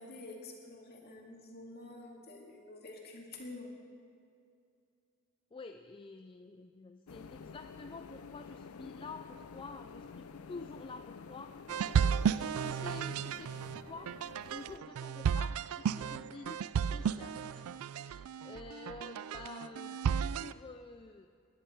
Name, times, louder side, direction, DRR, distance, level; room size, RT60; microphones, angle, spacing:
voice 1, 0.0-3.7, left 2 dB, 45° left, -1 dB, 2.3 m, -48 dB
voice 2, 5.5-11.6 12.2-13.5 13.8-14.1 14.5-17.7 18.0-21.3, left 3 dB, 25° left, 6 dB, 0.4 m, -49 dB
sound 1, 7.1-14.8, left 5 dB, 85° left, 0.5 m, -50 dB
sound 2, 11.7-20.5, right 7 dB, 85° right, 0.4 m, -34 dB
20.5 x 10.5 x 4.5 m, 2.4 s
head